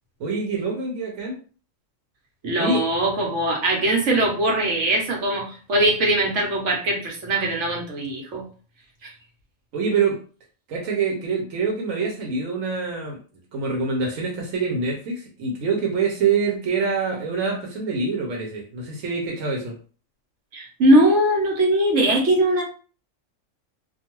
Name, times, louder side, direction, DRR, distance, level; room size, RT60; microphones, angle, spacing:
voice 1, 0.2-1.4 2.5-2.9 9.7-10.2 10.7-13.2 13.5-19.8, right 4 dB, 85° right, 0 dB, 1.1 m, -25 dB
voice 2, 2.4-8.4 20.5-22.6, right 1 dB, 70° right, -1 dB, 1.1 m, -21 dB
2.5 x 2.3 x 2.9 m, 0.38 s
omnidirectional pair, 1.3 m